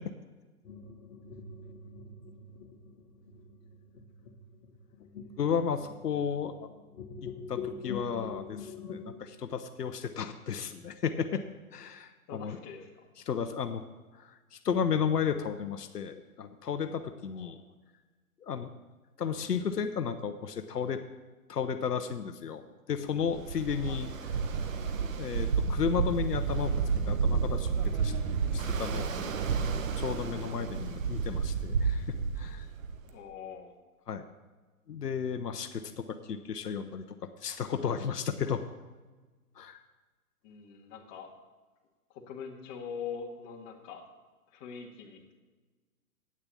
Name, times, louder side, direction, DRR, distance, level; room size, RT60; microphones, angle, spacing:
sound 1, 0.6-9.2, left 5 dB, 70° left, 1.5 m, -44 dB
voice 1, 5.4-6.5 7.5-11.4 11.7-12.6 13.3-13.8 14.5-17.6 18.5-18.7 19.2-21.0 21.5-22.6 22.9-24.1 24.9-26.8 27.1-27.7 28.0-28.1 28.5-29.3 30.0-32.7 34.1-34.2 34.9-37.0 37.4-38.6 39.6-39.8, left 7 dB, 85° left, 8 dB, 0.9 m, -33 dB
voice 2, 12.3-13.1 17.3-17.5 23.7-24.0 33.0-33.7 40.4-41.3 42.1-44.0 44.5-45.4, left 6 dB, 30° left, 0 dB, 1.8 m, -43 dB
Ocean, 23.2-33.1, right 5 dB, 55° right, 1.1 m, -31 dB
8.9 x 6.8 x 8.4 m, 1.3 s
hypercardioid pair, 135°, 46 cm